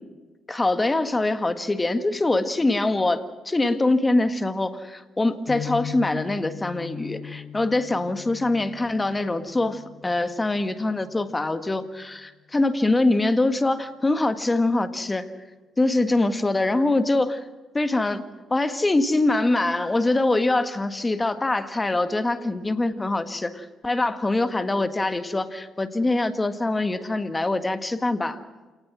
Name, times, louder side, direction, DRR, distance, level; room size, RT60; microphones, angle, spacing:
voice 1, 0.5-15.3 15.8-17.4 17.7-18.2 18.5-28.4, left 2 dB, 20° left, 10 dB, 1.7 m, -24 dB
sound 1, 5.5-11.5, left 9 dB, 50° left, 5.9 m, -39 dB
28.5 x 19.0 x 6.2 m, 1.3 s
cardioid pair, 90°, 0 cm